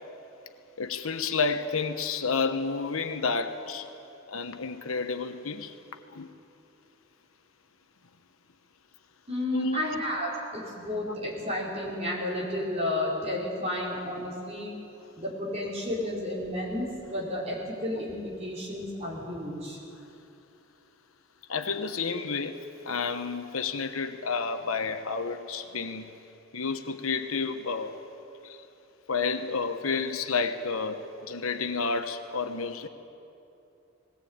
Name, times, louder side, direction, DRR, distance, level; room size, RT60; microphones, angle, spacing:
voice 1, 0.8-3.9 4.3-5.7 6.1-6.3 9.5-9.8 21.5-26.1 26.5-27.9 28.4-28.6 29.1-32.9, left 4 dB, 75° left, 8 dB, 1.1 m, -30 dB
voice 2, 9.3-14.8 15.2-19.8, left 1 dB, 30° right, -4 dB, 4.8 m, -32 dB
20.0 x 17.5 x 8.8 m, 2.8 s
head